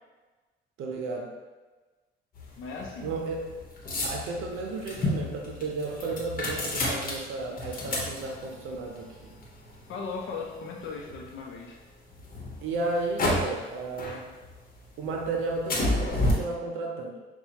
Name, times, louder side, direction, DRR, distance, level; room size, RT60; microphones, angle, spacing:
voice 1, 0.8-1.3 3.0-3.5 4.0-9.3 12.6-14.3 15.0-17.2, right 3 dB, 85° right, 1 dB, 0.6 m, -33 dB
sound 1, 2.4-11.5 12.1-13.7 14.0-14.8 15.1-16.3, left 1 dB, 45° left, 1.0 m, -32 dB
voice 2, 2.6-3.1 9.9-11.8, left 4 dB, 75° left, 0 dB, 0.6 m, -37 dB
5.8 x 2.3 x 2.9 m, 1.2 s
cardioid pair, 90°, 20 cm